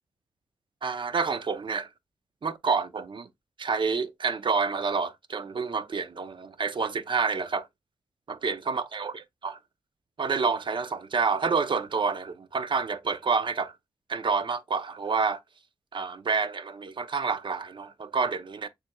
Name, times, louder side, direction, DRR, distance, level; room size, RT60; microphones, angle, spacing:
voice 1, 0.8-1.9 2.4-3.3 3.6-7.7 8.3-9.6 10.2-13.7 14.1-15.4 15.9-18.7, right 5 dB, 50° right, 0.7 m, -28 dB
6.7 x 3.1 x 2.3 m
cardioid pair, 55°, 11 cm